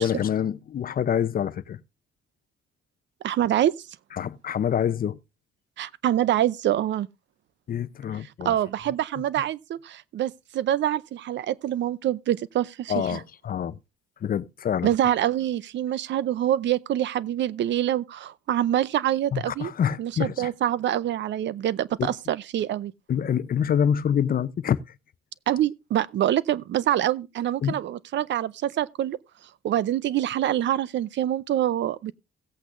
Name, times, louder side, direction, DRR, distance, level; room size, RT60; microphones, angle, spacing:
voice 1, 0.0-1.8 4.1-5.2 7.7-8.6 12.9-13.8 14.2-14.9 19.3-20.5 22.0-22.1 23.1-24.8 27.6-27.8, left 8 dB, 45° left, 0.6 m, -26 dB
voice 2, 3.2-3.7 5.8-7.1 8.4-13.2 14.8-19.7 20.0-22.9 25.5-29.2 29.6-32.1, right 12 dB, 65° right, 0.6 m, -25 dB
17.0 x 8.3 x 2.5 m
cardioid pair, 90°, 20 cm